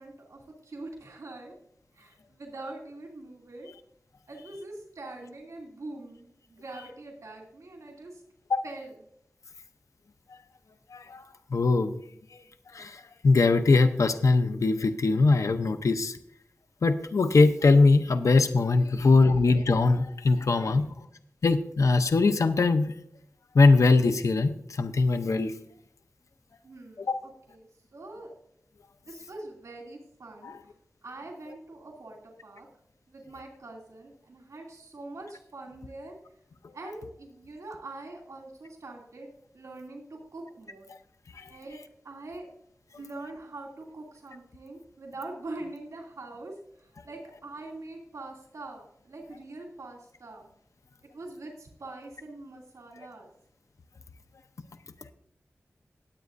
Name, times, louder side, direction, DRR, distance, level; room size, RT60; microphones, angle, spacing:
voice 1, 0.0-1.5 1.9-3.7 4.3-8.2 8.6-8.9 18.9-19.1 20.8-20.9 26.6-28.3 29.1-30.5 31.0-32.7 33.1-36.2 36.7-40.9 41.5-41.8 42.0-42.5 43.0-50.5 51.0-53.3, right 2 dB, 85° right, -1 dB, 2.6 m, -43 dB
voice 2, 10.9-11.2 11.5-11.9 12.7-16.2 16.8-20.8 21.4-22.9 23.5-25.5 27.0-27.2 30.4-30.6 41.4-41.5, left 3 dB, 80° left, 8 dB, 0.7 m, -22 dB
19.0 x 8.2 x 2.6 m, 0.69 s
wide cardioid pair, 70°, 5 cm